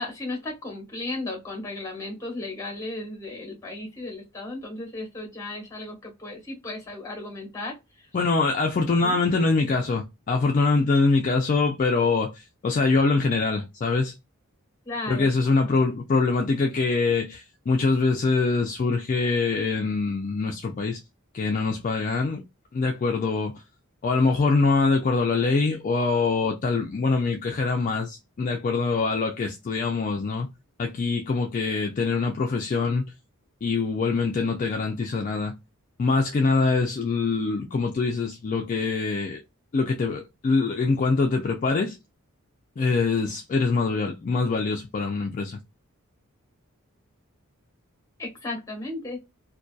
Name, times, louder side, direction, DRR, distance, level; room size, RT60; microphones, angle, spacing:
voice 1, 0.0-8.1 9.0-9.2 14.8-15.3 48.2-49.2, left 2 dB, 15° left, 1.1 m, -35 dB
voice 2, 8.1-14.1 15.1-21.0 21.3-22.4 22.7-23.6 24.0-30.5 30.8-33.1 33.6-35.5 36.0-39.4 39.7-42.0 42.8-45.6, left 4 dB, 35° left, 0.3 m, -24 dB
2.6 x 2.2 x 2.2 m
head